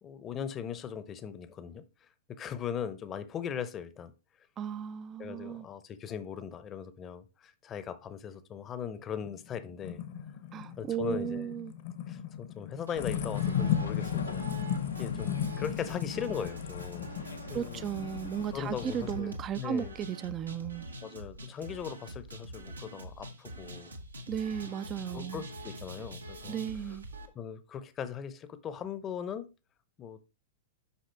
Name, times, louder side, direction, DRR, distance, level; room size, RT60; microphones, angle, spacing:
voice 1, 0.0-4.1 5.2-10.0 10.8-11.5 12.1-14.5 15.0-17.8 18.5-19.9 21.0-24.0 24.3-24.4 25.1-26.6 27.3-29.5 30.0-30.2, left 7 dB, 25° left, 0.8 m, -39 dB
voice 2, 4.6-5.7 10.5-11.7 17.5-20.9 24.3-25.5 26.5-27.1, right 9 dB, 30° right, 0.4 m, -35 dB
sound 1, 9.2-19.3, left 9 dB, 50° left, 1.0 m, -35 dB
sound 2, 12.9-27.3, right 1 dB, 85° right, 1.1 m, -46 dB
sound 3, 13.0-19.2, left 4 dB, 80° left, 0.8 m, -43 dB
8.4 x 5.5 x 3.4 m
figure-of-eight pair, 100°, 0 cm